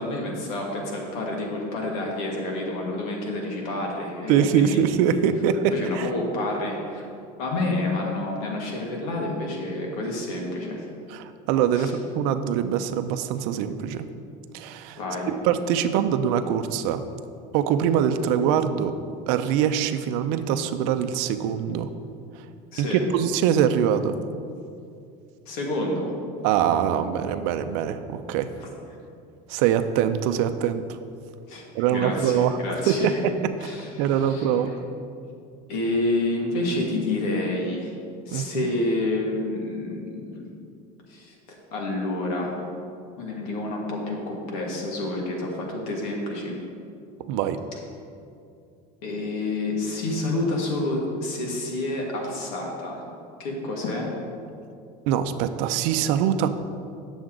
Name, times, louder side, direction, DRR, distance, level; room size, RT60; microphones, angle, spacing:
voice 1, 0.0-4.8 5.7-7.1 7.4-10.9 11.7-11.9 15.0-15.3 22.7-23.0 25.5-26.1 28.6-28.7 31.5-33.3 33.6-34.7 35.7-37.9 38.3-40.5 41.1-42.5 43.2-46.5 49.0-53.0 53.4-54.1, left 2 dB, 80° left, -1 dB, 1.9 m, -29 dB
voice 2, 4.3-6.1 11.1-14.1 14.5-15.0 15.3-17.0 17.5-19.0 19.3-21.9 22.8-24.2 26.4-28.5 29.5-31.0 31.7-32.6 32.9-33.3 33.6-33.7 34.0-34.7 38.3-38.7 47.3-47.6 55.1-56.5, right 9 dB, 70° right, 10 dB, 0.5 m, -23 dB
9.0 x 7.1 x 3.8 m, 2.5 s
cardioid pair, 155°, 18 cm